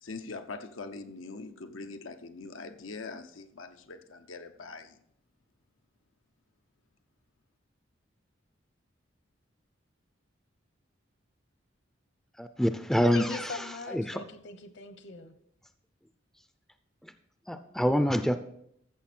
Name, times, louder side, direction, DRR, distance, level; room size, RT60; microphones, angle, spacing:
voice 1, 0.0-4.9, left 3 dB, 85° left, 0.8 m, -42 dB
voice 2, 12.4-13.5 13.9-14.2 17.0-17.1 17.5-18.4, equal, ahead, 0.4 m, -26 dB
voice 3, 13.1-15.3, left 4 dB, 60° left, 1.1 m, -41 dB
14.5 x 6.7 x 4.3 m
head